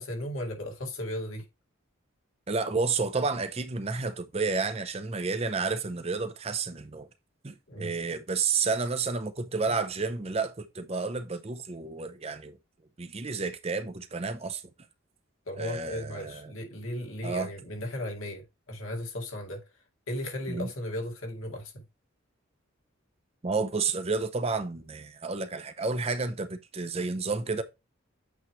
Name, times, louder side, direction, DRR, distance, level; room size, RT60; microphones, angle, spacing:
voice 1, 0.0-1.4 7.7-7.9 15.5-19.6 20.1-21.8, left 1 dB, 85° left, 2.1 m, -36 dB
voice 2, 2.5-7.1 7.4-12.6 13.0-14.6 15.6-16.5 17.2-17.5 20.5-20.7 23.4-27.6, right 4 dB, 30° right, 0.6 m, -31 dB
8.3 x 3.1 x 4.3 m
head